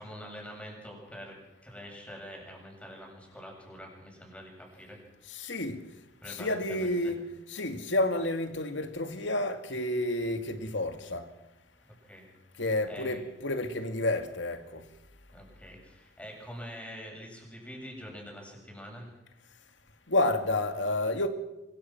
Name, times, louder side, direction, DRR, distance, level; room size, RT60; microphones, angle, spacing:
voice 1, 0.0-1.4 1.6-5.0 6.2-7.1 11.8-12.3 12.9-13.2 15.3-19.1, equal, 5° left, 7.7 m, -45 dB
voice 2, 5.3-5.8 6.3-11.3 12.6-14.8 20.1-21.3, left 1 dB, 85° left, 2.3 m, -30 dB
24.5 x 23.0 x 6.1 m
head